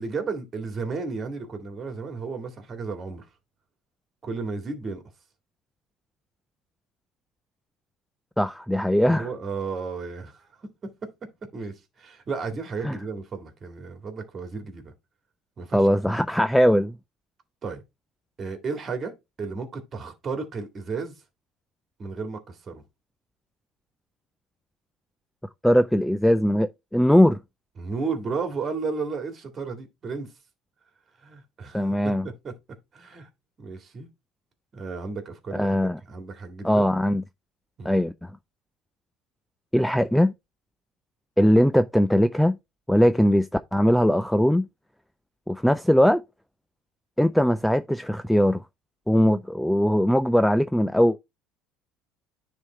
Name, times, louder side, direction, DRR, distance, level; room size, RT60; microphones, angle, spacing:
voice 1, 0.0-3.3 4.2-5.0 9.1-10.5 10.8-10.9 11.5-14.9 15.6-15.8 16.1-16.2 17.6-17.8 18.4-19.1 19.4-21.2 22.0-22.8 27.8-30.3 31.2-32.5 32.9-33.3 33.6-34.1 34.7-36.9 37.8-38.1, right 4 dB, 30° right, 2.0 m, -33 dB
voice 2, 8.4-9.3 12.8-13.0 15.7-17.0 25.6-27.4 31.7-32.3 35.5-36.0 36.6-37.2 37.9-38.1 39.7-40.3 41.4-42.6 42.9-44.7 45.5-46.2 47.2-48.6 49.1-51.2, equal, ahead, 0.3 m, -20 dB
9.7 x 3.5 x 4.3 m
cardioid pair, 140°, 0 cm